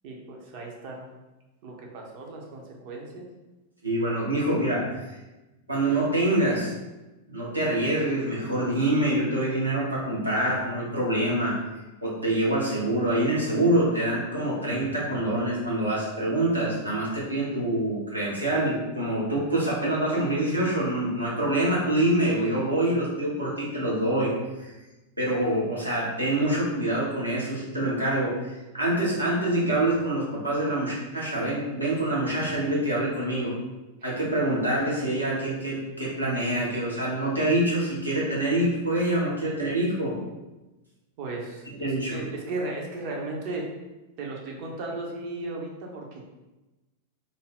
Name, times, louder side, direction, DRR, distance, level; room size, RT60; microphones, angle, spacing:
voice 1, 0.0-1.1 1.6-3.3 34.0-34.1 41.2-43.7 44.2-46.2, right 2 dB, 45° right, 0 dB, 0.6 m, -36 dB
voice 2, 3.8-5.0 5.7-6.7 7.3-11.6 12.0-24.7 25.2-33.5 34.0-40.2 41.8-42.2, right 1 dB, 85° right, -6 dB, 0.9 m, -26 dB
2.6 x 2.0 x 3.4 m, 1.1 s
figure-of-eight pair, 95°, 0 cm